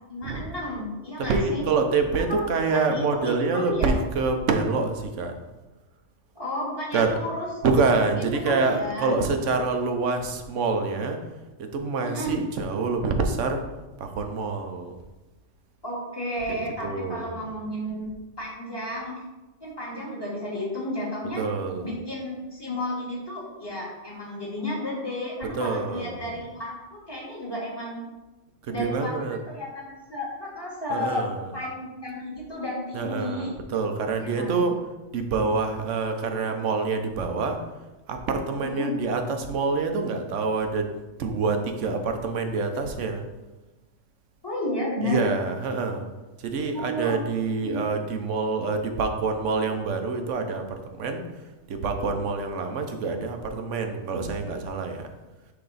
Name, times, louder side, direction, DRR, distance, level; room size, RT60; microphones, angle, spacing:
voice 1, 0.1-1.6 2.3-2.5 2.9-3.9 6.4-7.5 7.9-9.1 12.0-12.4 15.8-18.1 18.4-19.2 19.6-21.4 21.8-28.0 28.7-31.3 31.5-33.5 34.2-34.7 38.6-38.9 44.4-45.2 46.7-47.2 47.6-47.8, left 1 dB, 20° left, -6 dB, 2.1 m, -32 dB
voice 2, 1.2-5.4 6.9-7.2 7.6-11.2 11.6-13.6 14.0-15.0 16.5-17.5 21.2-21.9 25.4-26.4 28.6-29.4 30.9-31.6 32.9-34.8 35.1-37.6 38.1-40.9 41.2-43.3 45.0-46.1 46.4-51.2 51.7-55.1, right 4 dB, 75° right, 5 dB, 1.1 m, -26 dB
10.0 x 3.5 x 4.0 m, 1.1 s
omnidirectional pair, 1.3 m